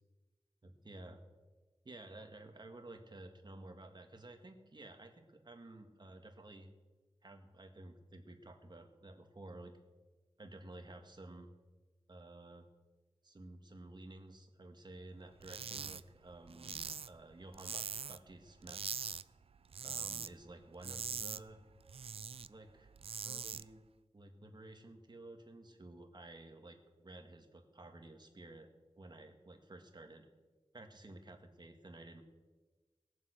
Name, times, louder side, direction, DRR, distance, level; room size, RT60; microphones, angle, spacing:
voice 1, 0.6-1.2 1.8-6.7 7.2-9.7 10.4-11.5 12.1-12.7 13.2-19.1 19.8-21.6 22.5-22.9 23.2-23.8 24.1-28.7 29.0-30.3 30.7-32.2, right 2 dB, 45° right, 4 dB, 1.8 m, -53 dB
sound 1, 15.4-16.0 16.3-18.3 18.6-19.2 19.5-20.3 20.6-22.5 22.8-23.6, right 6 dB, 65° right, 0.4 m, -42 dB
19.5 x 7.3 x 6.4 m, 1.2 s
wide cardioid pair, 85°, 11 cm